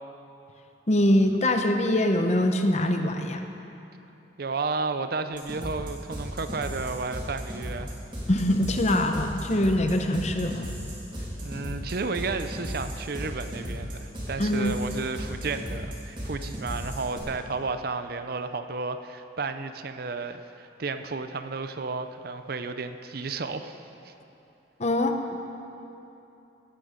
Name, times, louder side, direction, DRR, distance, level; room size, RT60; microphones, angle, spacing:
voice 1, 0.9-3.4 8.3-10.7 14.4-14.8 24.8-25.2, left 1 dB, 40° left, 5 dB, 0.9 m, -23 dB
voice 2, 4.4-7.9 11.4-23.8 24.0-24.1, right 4 dB, 55° right, 9 dB, 0.6 m, -32 dB
sound 1, 5.3-17.2, equal, 30° right, 3.2 m, -35 dB
16.5 x 12.0 x 5.2 m, 2.9 s
head